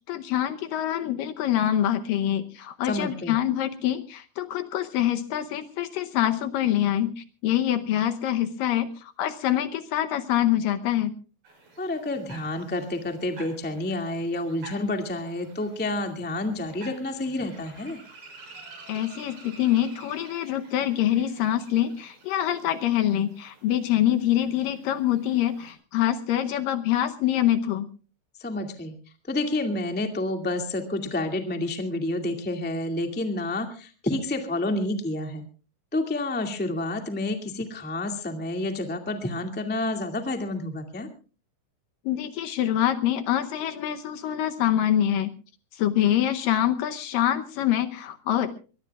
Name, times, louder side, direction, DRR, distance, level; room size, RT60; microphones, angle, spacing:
voice 1, 0.1-11.1 18.9-27.9 42.1-45.3 45.8-48.5, left 11 dB, 75° left, 9 dB, 2.3 m, -25 dB
voice 2, 2.8-3.4 11.8-18.0 28.4-28.9 29.3-35.4 35.9-41.1, left 2 dB, 10° left, 5 dB, 0.5 m, -29 dB
sound 1, 11.4-25.7, right 2 dB, 65° right, 7.5 m, -50 dB
23.5 x 20.5 x 2.4 m, 0.36 s
omnidirectional pair, 4.5 m